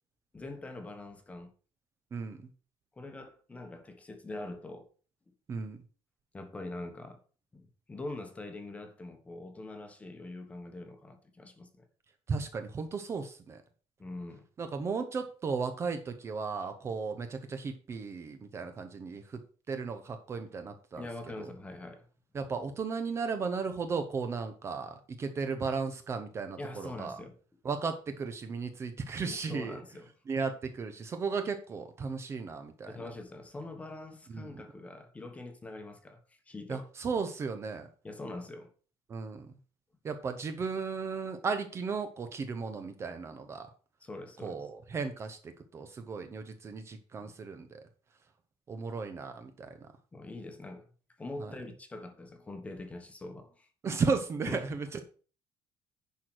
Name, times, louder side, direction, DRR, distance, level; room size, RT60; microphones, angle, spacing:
voice 1, 0.3-1.5 2.9-4.9 6.3-7.2 7.5-11.9 14.0-14.5 21.0-22.1 26.6-27.4 29.3-30.1 32.9-36.9 38.0-38.7 44.0-44.7 50.1-50.9 51.2-53.7 54.5-54.7, left 2 dB, 10° left, 1.2 m, -43 dB
voice 2, 2.1-2.4 5.5-5.8 12.3-13.6 14.6-19.4 19.7-21.0 21.4-21.5 22.3-27.2 27.6-29.8 30.3-32.9 34.3-34.5 36.7-37.9 39.1-39.5 40.0-43.7 44.4-47.8 48.7-49.7 51.4-51.5 53.8-55.1, right 5 dB, 25° right, 0.9 m, -35 dB
10.5 x 4.7 x 6.2 m
cardioid pair, 180°, 11 cm